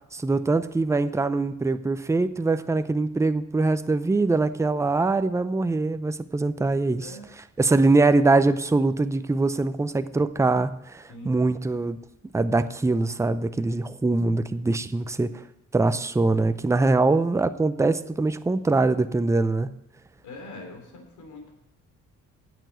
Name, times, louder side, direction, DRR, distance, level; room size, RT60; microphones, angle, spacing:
voice 1, 0.1-12.0 12.3-15.4 15.7-19.7, right 3 dB, 10° right, 11 dB, 0.5 m, -23 dB
voice 2, 20.2-21.5, left 2 dB, 75° left, 3 dB, 3.1 m, -42 dB
9.0 x 7.0 x 7.8 m, 0.83 s
cardioid pair, 90°, 30 cm